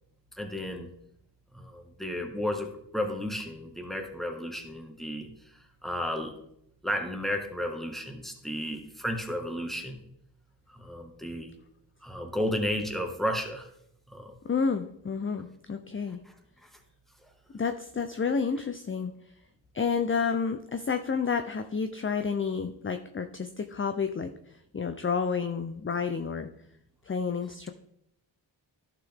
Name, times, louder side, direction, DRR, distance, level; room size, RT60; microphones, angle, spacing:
voice 1, 0.3-0.9 1.5-5.3 5.8-6.3 6.8-10.0 10.7-11.5 12.0-13.7 14.1-14.3 16.2-16.3 16.6-16.7, equal, ahead, 4 dB, 1.6 m, -33 dB
voice 2, 14.4-16.2 17.5-19.1 19.7-24.3 24.7-26.5 27.0-27.7, left 5 dB, 30° left, 7 dB, 0.6 m, -30 dB
11.5 x 6.1 x 3.5 m, 0.75 s
cardioid pair, 55°, 45 cm